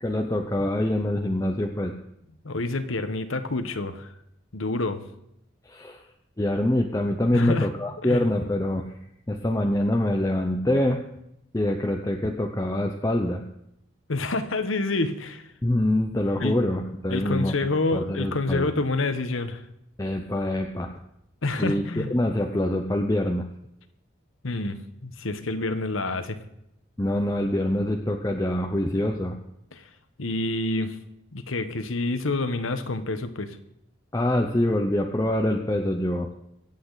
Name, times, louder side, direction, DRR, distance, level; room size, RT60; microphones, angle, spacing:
voice 1, 0.0-1.9 5.7-6.0 6.4-8.9 9.3-11.0 11.5-13.4 15.6-17.6 17.9-18.7 20.0-20.9 21.6-23.5 27.0-29.4 34.1-36.3, left 1 dB, 15° left, 2 dB, 0.7 m, -25 dB
voice 2, 2.4-4.1 4.5-5.0 7.3-7.7 8.0-8.3 14.1-15.4 16.4-16.6 17.1-19.6 21.4-22.1 24.4-26.4 29.7-29.8 30.2-31.0 31.3-33.6, left 2 dB, 85° left, 10 dB, 1.2 m, -28 dB
24.0 x 8.5 x 4.0 m, 0.80 s
head